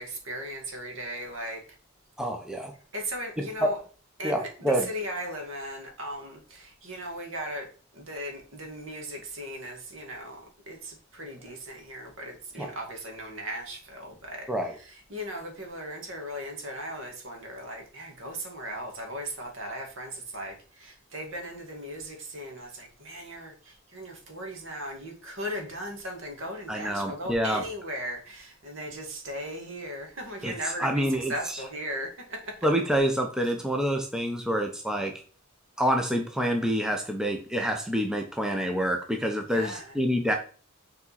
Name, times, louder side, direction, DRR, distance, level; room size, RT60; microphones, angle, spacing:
voice 1, 0.0-1.6 2.9-3.8 4.2-7.7 7.9-32.6 39.4-40.0, right 1 dB, 65° right, 2.1 m, -37 dB
voice 2, 2.2-2.7 3.6-3.7 4.2-4.9 12.6-12.7 14.5-14.7 26.7-27.6 30.4-30.5 30.8-31.3 32.6-35.1 35.8-40.3, equal, 5° right, 0.7 m, -27 dB
7.3 x 4.2 x 4.2 m
head